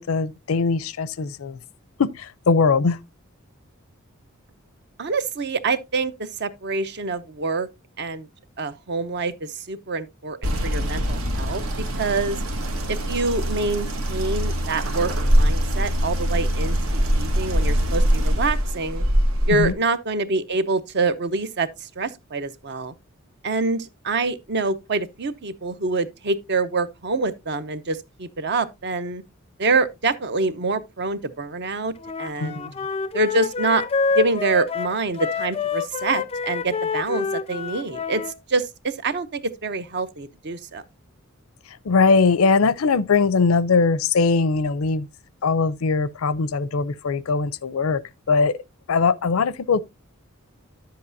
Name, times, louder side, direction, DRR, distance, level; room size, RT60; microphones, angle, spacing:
voice 1, 0.0-1.6 2.0-3.0 19.5-19.7 32.4-32.5 41.8-45.1 45.4-48.0 48.3-48.6 48.9-49.8, left 4 dB, 85° left, 0.5 m, -20 dB
voice 2, 5.0-7.7 8.0-8.3 8.6-11.6 11.9-12.4 12.9-19.0 19.5-22.9 23.4-29.2 29.6-31.9 32.2-32.7 33.1-33.8 34.1-38.2 38.5-40.8, right 3 dB, 55° right, 0.7 m, -26 dB
sound 1, 10.4-19.7, equal, 80° right, 1.4 m, -23 dB
Wind instrument woodwind instrument, 32.0-38.3, left 5 dB, 30° left, 0.4 m, -27 dB
10.0 x 7.7 x 2.6 m
head